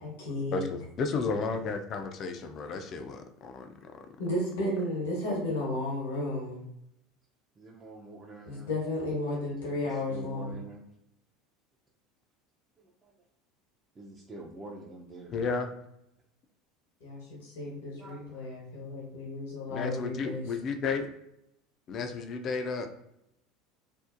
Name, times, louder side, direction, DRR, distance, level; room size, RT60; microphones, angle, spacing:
voice 1, 0.0-0.7 4.2-6.6 8.4-10.6 17.0-20.4, left 1 dB, 75° left, -3 dB, 0.9 m, -33 dB
voice 2, 0.5-3.9 15.3-15.7 19.7-21.1 21.9-22.9, left 4 dB, 45° left, 6 dB, 0.4 m, -33 dB
voice 3, 7.6-8.7 9.8-10.8 13.0-13.1 14.0-15.4 17.9-18.5, right 2 dB, 25° right, -3 dB, 0.4 m, -46 dB
2.7 x 2.1 x 2.4 m, 0.79 s
hypercardioid pair, 75°, 0 cm